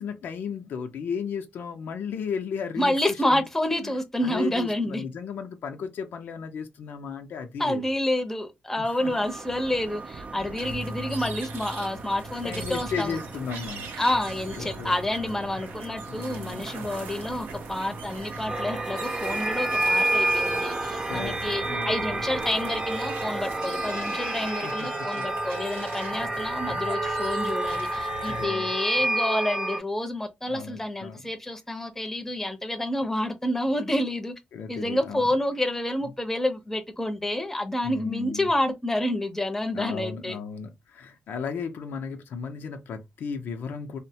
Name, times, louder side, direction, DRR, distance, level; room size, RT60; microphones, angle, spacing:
voice 1, 0.0-3.0 3.3-3.4 3.8-7.8 8.8-9.1 10.4-10.5 12.4-13.9 14.6-15.0 15.5-15.6 16.1-16.8 21.1-21.4 21.6-22.2 24.6-25.2 27.6-27.8 28.2-29.0 30.5-31.2 32.4-32.6 34.5-35.2 37.8-38.5 39.7-44.0, left 6 dB, 75° left, 0.5 m, -35 dB
voice 2, 2.8-5.0 7.6-13.2 14.0-34.3 34.7-40.4, left 1 dB, 10° left, 0.7 m, -28 dB
sound 1, 9.0-24.5, right 4 dB, 40° right, 0.4 m, -41 dB
sound 2, 10.6-28.5, right 2 dB, 90° right, 0.7 m, -40 dB
sound 3, 18.5-29.8, right 1 dB, 25° right, 0.7 m, -29 dB
3.0 x 2.1 x 2.7 m
cardioid pair, 75°, 3 cm